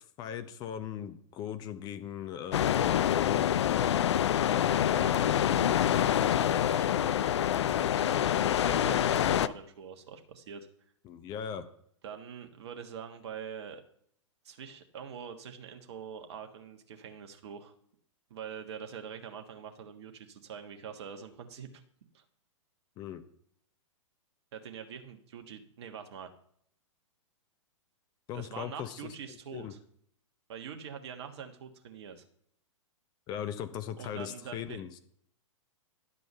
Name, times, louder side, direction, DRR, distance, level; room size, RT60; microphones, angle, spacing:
voice 1, 0.2-3.5 11.0-11.7 23.0-23.2 28.3-29.1 29.5-29.7 33.3-35.0, left 9 dB, 25° left, 10 dB, 0.7 m, -38 dB
sound 1, 2.5-9.5, left 10 dB, 55° left, 0.4 m, -26 dB
voice 2, 4.9-10.7 12.0-13.8 14.4-17.7 18.3-21.8 22.1-22.2 24.5-26.3 28.3-29.8 30.5-32.2 34.0-34.8, right 7 dB, 55° right, 6 dB, 1.4 m, -44 dB
11.0 x 5.3 x 5.6 m, 0.66 s
figure-of-eight pair, 110°, 17 cm